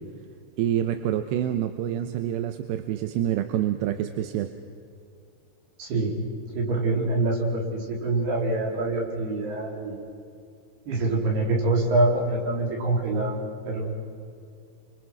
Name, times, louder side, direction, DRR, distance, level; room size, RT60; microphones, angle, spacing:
voice 1, 0.6-4.5, right 11 dB, 85° right, 8 dB, 3.0 m, -27 dB
voice 2, 5.8-6.1 6.5-10.0 10.9-13.4 13.6-13.9, right 2 dB, 65° right, -1 dB, 6.3 m, -25 dB
29.0 x 25.0 x 6.2 m, 2.4 s
omnidirectional pair, 4.9 m